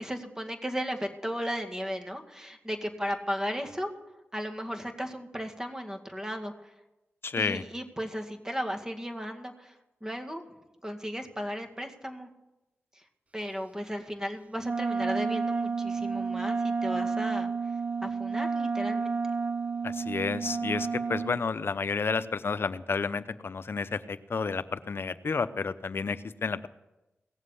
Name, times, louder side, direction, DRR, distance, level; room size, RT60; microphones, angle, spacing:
voice 1, 0.0-3.9 4.3-6.7 7.4-9.8 10.0-10.4 10.8-12.3 12.9-13.0 13.3-17.5 18.0-19.2, equal, 15° right, 4 dB, 2.0 m, -35 dB
voice 2, 7.2-7.6 19.8-26.7, left 4 dB, 55° left, 14 dB, 0.8 m, -31 dB
Wind instrument woodwind instrument, 14.6-21.4, right 5 dB, 30° right, 0.5 m, -30 dB
17.5 x 7.4 x 9.9 m, 1.0 s
cardioid pair, 60°, 5 cm